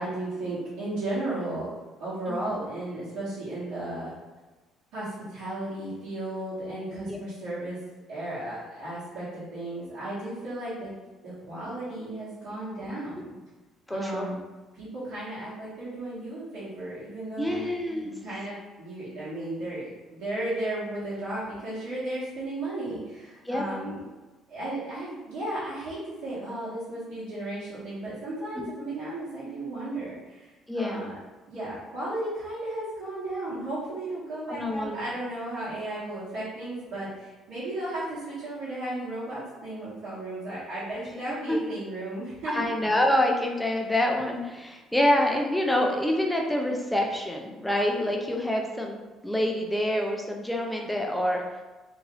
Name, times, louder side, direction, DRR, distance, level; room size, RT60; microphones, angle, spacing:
voice 1, 0.0-1.7 2.0-4.1 4.9-7.8 8.1-10.9 11.2-13.3 13.9-14.4 14.8-17.6 18.0-24.1 24.5-31.2 31.5-42.7, right 1 dB, 90° right, -13 dB, 1.3 m, -34 dB
voice 2, 13.9-14.3 17.4-18.1 23.5-23.6 28.6-28.7 30.7-31.0 34.5-35.0 41.5-41.6 42.5-51.4, left 1 dB, 5° left, 1 dB, 0.3 m, -26 dB
2.9 x 2.4 x 3.0 m, 1.2 s
cardioid pair, 170°, 0 cm